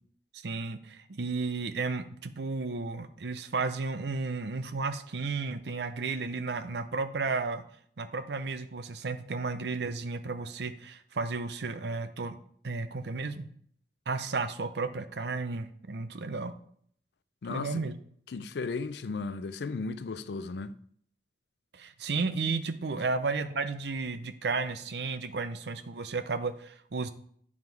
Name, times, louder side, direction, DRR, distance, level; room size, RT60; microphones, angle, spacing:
voice 1, 0.3-7.6 8.0-12.4 12.6-13.5 14.1-16.5 17.5-17.9 21.7-27.1, right 4 dB, 75° right, 0.6 m, -33 dB
voice 2, 17.4-17.8 18.3-20.7, left 4 dB, 75° left, 0.4 m, -35 dB
9.7 x 3.6 x 4.6 m
head